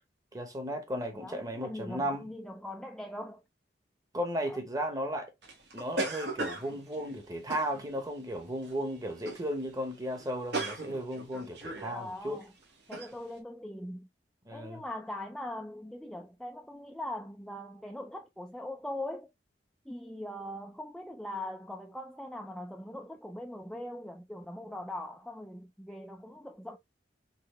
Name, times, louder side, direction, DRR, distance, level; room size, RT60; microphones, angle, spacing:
voice 1, 0.3-2.3 4.1-5.3 5.7-12.4 14.4-14.8, equal, 20° right, 1.1 m, -35 dB
voice 2, 1.1-3.4 4.5-4.6 4.9-5.0 11.9-12.5 12.9-14.1 14.5-19.3 19.9-26.8, left 1 dB, 5° left, 0.3 m, -41 dB
sound 1, 5.4-8.1 8.6-8.9 9.2-9.5 9.8-9.9 10.1-12.0 12.4-12.5 12.9-13.1, right 2 dB, 65° right, 1.3 m, -37 dB
4.0 x 3.2 x 3.2 m
head